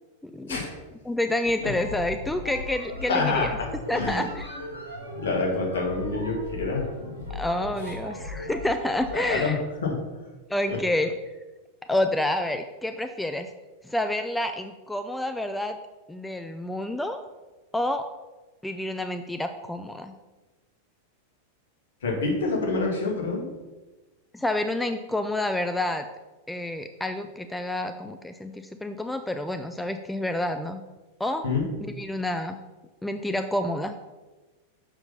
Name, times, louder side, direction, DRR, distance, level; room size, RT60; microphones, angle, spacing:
voice 1, 0.2-0.6 1.1-3.6 3.9-4.6 7.3-9.6 10.5-11.1 11.9-13.5 13.8-15.8 16.1-17.2 17.7-18.0 18.6-20.1 24.3-26.1 26.5-30.8 31.2-31.4 31.9-32.6 33.0-33.9, left 1 dB, 5° left, 8 dB, 0.4 m, -28 dB
sound 1, 1.5-9.4, left 2 dB, 90° left, 2.0 m, -37 dB
voice 2, 3.1-3.7 3.9-4.2 5.2-6.8 7.8-7.9 9.1-10.0 10.7-10.8 22.0-23.5 31.4-31.6, left 3 dB, 60° left, 0 dB, 2.0 m, -27 dB
6.9 x 5.7 x 5.6 m, 1.2 s
figure-of-eight pair, 90°, 0 cm